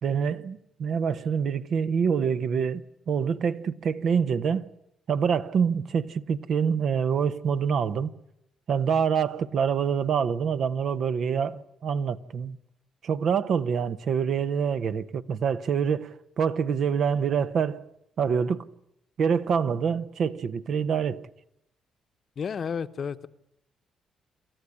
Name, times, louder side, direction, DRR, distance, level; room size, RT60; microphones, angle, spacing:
voice 1, 0.0-4.7 5.1-8.1 8.7-12.6 13.0-17.8 18.2-18.6 19.2-21.3, right 7 dB, 60° right, 1.0 m, -26 dB
voice 2, 22.4-23.3, left 6 dB, 50° left, 0.9 m, -31 dB
27.5 x 13.5 x 9.7 m
cardioid pair, 90°, 0 cm